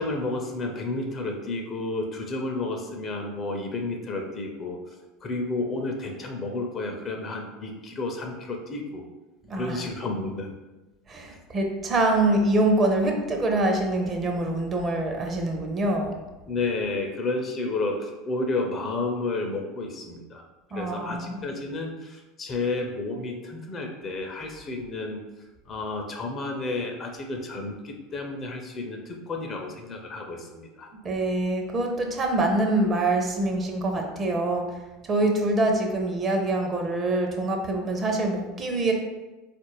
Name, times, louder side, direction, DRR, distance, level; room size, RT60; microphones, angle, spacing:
voice 1, 0.0-4.8 5.2-9.0 9.5-10.5 16.5-20.4 20.7-25.2 25.7-30.9, left 2 dB, 35° left, 3 dB, 0.6 m, -31 dB
voice 2, 9.5-9.8 11.1-16.1 20.7-21.4 31.0-34.6 35.0-38.9, right 2 dB, 30° right, 3 dB, 0.6 m, -25 dB
3.9 x 2.5 x 3.1 m, 1.1 s
hypercardioid pair, 75°, 0 cm